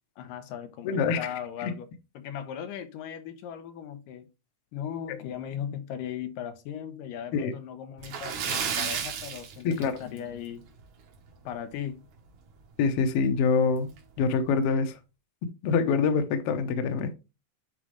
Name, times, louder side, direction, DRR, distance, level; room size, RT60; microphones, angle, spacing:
voice 1, 0.2-1.9 2.2-4.3 4.7-10.6 11.5-12.0, left 9 dB, 90° left, 2.5 m, -38 dB
voice 2, 0.8-1.2 1.6-1.7 7.3-7.5 9.6-9.9 12.8-13.9 14.2-15.0 15.6-17.1, left 5 dB, 70° left, 1.4 m, -25 dB
Splash splatter, 8.0-10.4 10.7-10.8 11.3-11.4 12.8-12.9 13.2-13.3 14.0-14.2, right 7 dB, 65° right, 2.2 m, -32 dB
9.5 x 3.7 x 3.2 m
omnidirectional pair, 3.8 m